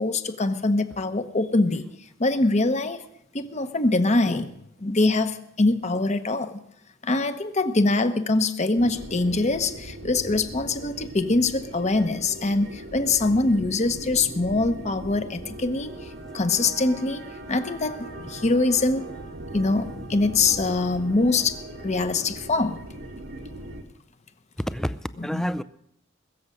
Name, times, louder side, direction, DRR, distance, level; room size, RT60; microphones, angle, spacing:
voice 1, 0.0-1.8 2.2-3.0 3.3-6.6 7.0-17.2 17.5-19.0 19.5-21.6 21.8-22.8 25.3-25.5, left 2 dB, 35° left, 9 dB, 1.0 m, -23 dB
sound 1, 8.8-23.8, right 1 dB, 80° right, 1.7 m, -39 dB
voice 2, 24.6-25.6, equal, ahead, 14 dB, 0.4 m, -30 dB
21.5 x 7.3 x 6.5 m, 0.76 s
head